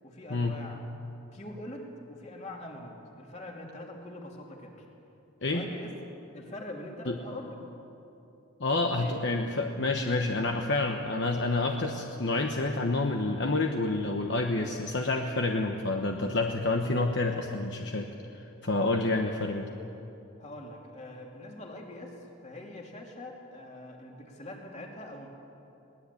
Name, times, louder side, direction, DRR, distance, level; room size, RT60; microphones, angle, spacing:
voice 1, 0.0-0.8 1.3-4.8 5.4-5.9 6.3-7.6 9.0-9.2 18.7-19.0 20.4-25.3, left 1 dB, 30° left, 0 dB, 3.0 m, -43 dB
voice 2, 8.6-18.1 18.3-19.6, left 2 dB, 55° left, 3 dB, 1.1 m, -28 dB
22.0 x 19.0 x 8.5 m, 2.9 s
head